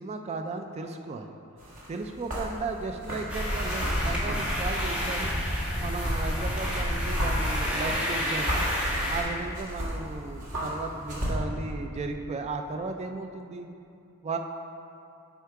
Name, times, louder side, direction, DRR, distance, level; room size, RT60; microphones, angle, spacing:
voice 1, 0.0-1.4 1.9-5.3 5.8-8.7 9.1-13.7 14.2-14.4, right 3 dB, 30° right, 6 dB, 0.3 m, -35 dB
sound 1, 1.6-11.3, equal, 80° right, 1.7 m, -35 dB
sound 2, 3.3-9.2, equal, 5° right, 1.4 m, -29 dB
8.0 x 4.6 x 4.7 m, 2.6 s
head